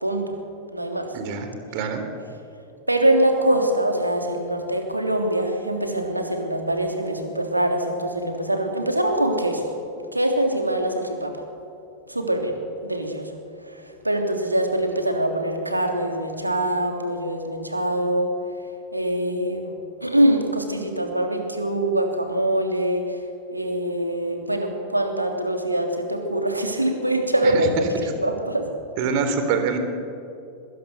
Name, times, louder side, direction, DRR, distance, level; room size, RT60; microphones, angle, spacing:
voice 1, 0.0-0.3 0.7-1.1 2.9-9.7 10.1-11.3 12.1-12.6 12.8-13.3 13.6-18.3 18.9-19.7 20.0-23.2 23.5-27.7 28.0-28.7, right 1 dB, 85° right, 3 dB, 3.2 m, -23 dB
voice 2, 1.1-2.0 27.4-27.7 29.0-29.8, right 5 dB, 45° right, 7 dB, 3.6 m, -25 dB
24.0 x 21.0 x 7.0 m, 2.6 s
figure-of-eight pair, 90°, 0 cm